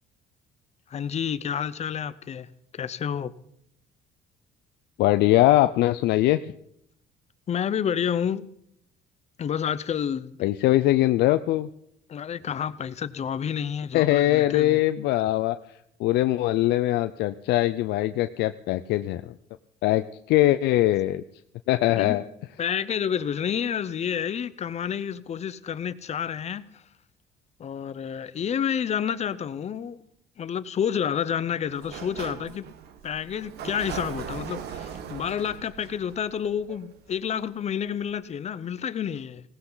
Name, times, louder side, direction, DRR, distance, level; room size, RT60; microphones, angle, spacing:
voice 1, 0.9-2.5 2.7-3.3 7.5-8.5 9.4-10.4 12.1-14.8 21.9-22.2 22.6-26.6 27.6-30.0 30.4-32.7 33.0-39.4, left 8 dB, 40° left, 0.7 m, -29 dB
voice 2, 5.0-6.4 10.4-11.7 13.9-15.6 16.0-19.3 19.8-21.2 21.7-22.2, left 15 dB, 80° left, 0.5 m, -22 dB
Sliding door, 31.7-37.4, right 8 dB, 75° right, 1.2 m, -39 dB
19.5 x 17.5 x 4.0 m
cardioid pair, 110°, 17 cm